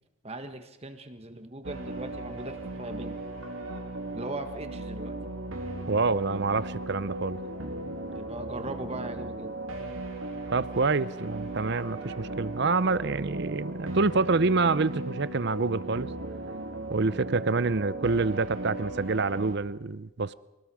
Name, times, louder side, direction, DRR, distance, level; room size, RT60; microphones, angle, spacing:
voice 1, 0.2-3.2 4.1-5.1 8.1-9.5, right 2 dB, 30° right, 1.5 m, -39 dB
sound 1, 1.6-19.6, right 2 dB, 75° right, 3.2 m, -37 dB
voice 2, 5.9-7.4 10.5-16.1 16.9-20.3, right 3 dB, 55° right, 0.6 m, -27 dB
24.5 x 18.5 x 6.3 m
head